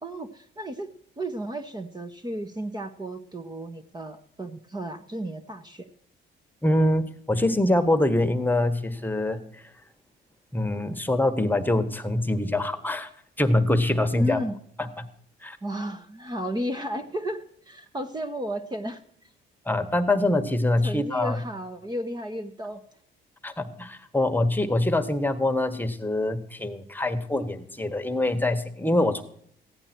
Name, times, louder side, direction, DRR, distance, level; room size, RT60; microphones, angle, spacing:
voice 1, 0.0-0.9 1.2-5.9 14.1-14.6 15.6-19.0 20.8-22.8, right 1 dB, 20° right, 7 dB, 1.1 m, -33 dB
voice 2, 6.6-9.4 10.5-13.1 13.4-14.4 14.8-15.1 15.4-15.6 19.6-21.4 23.4-29.2, left 1 dB, 10° left, 9 dB, 1.4 m, -24 dB
15.5 x 11.0 x 4.5 m, 0.64 s
cardioid pair, 90°, 20 cm